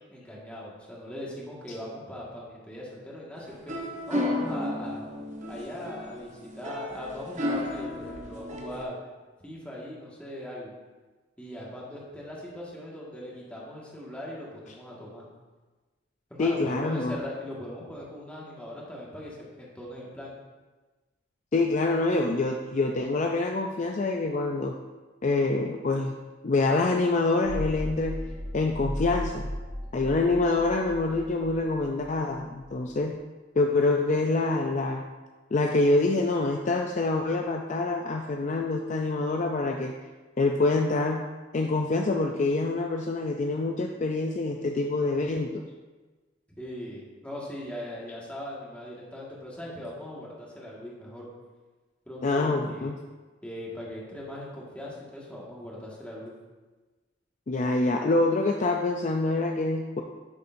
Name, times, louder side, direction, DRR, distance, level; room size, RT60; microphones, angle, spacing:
voice 1, 0.1-3.7 4.1-5.0 5.5-8.9 9.4-10.7 11.4-15.2 16.3-20.3 46.6-51.3 52.1-52.9 53.4-56.3, left 1 dB, 5° left, -5 dB, 1.7 m, -39 dB
sound 1, 3.4-8.8, left 1 dB, 40° right, 0.9 m, -33 dB
voice 2, 16.4-17.2 21.5-24.7 25.2-26.1 26.4-28.2 28.5-29.5 29.9-33.1 33.6-35.0 35.5-39.9 40.4-41.2 41.5-45.6 52.2-53.0 57.5-60.0, left 2 dB, 40° left, 2 dB, 0.4 m, -26 dB
sound 2, 27.4-32.9, equal, 90° right, 2.4 m, -36 dB
9.9 x 6.7 x 2.6 m, 1.3 s
head